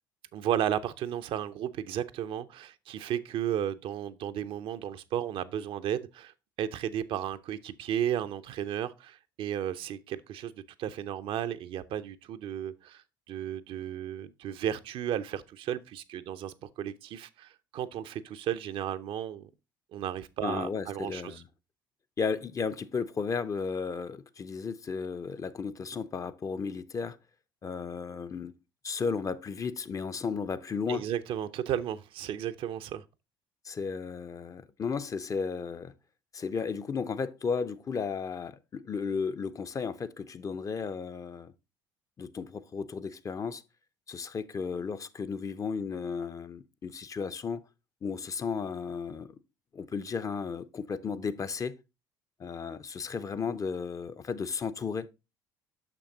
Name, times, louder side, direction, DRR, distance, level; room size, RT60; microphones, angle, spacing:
voice 1, 0.3-10.5 10.8-19.5 19.9-21.4 30.9-33.0, right 10 dB, 55° right, 0.5 m, -34 dB
voice 2, 20.4-21.4 22.2-27.2 27.6-28.5 28.8-31.1 33.6-35.9 36.3-41.5 42.2-43.6 44.1-47.6 48.0-49.3 49.7-51.8 52.4-55.1, left 5 dB, 30° left, 0.6 m, -34 dB
6.4 x 6.0 x 3.7 m
hypercardioid pair, 60°, 11 cm